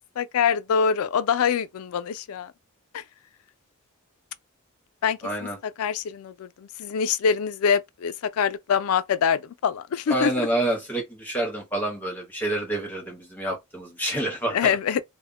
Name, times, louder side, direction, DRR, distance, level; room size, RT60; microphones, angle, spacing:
voice 1, 0.2-2.5 2.9-3.0 5.0-5.5 5.8-10.5 14.5-15.0, left 7 dB, 75° left, 0.3 m, -25 dB
voice 2, 5.2-5.6 10.1-14.8, right 1 dB, 5° left, 0.7 m, -28 dB
2.1 x 2.1 x 3.6 m
head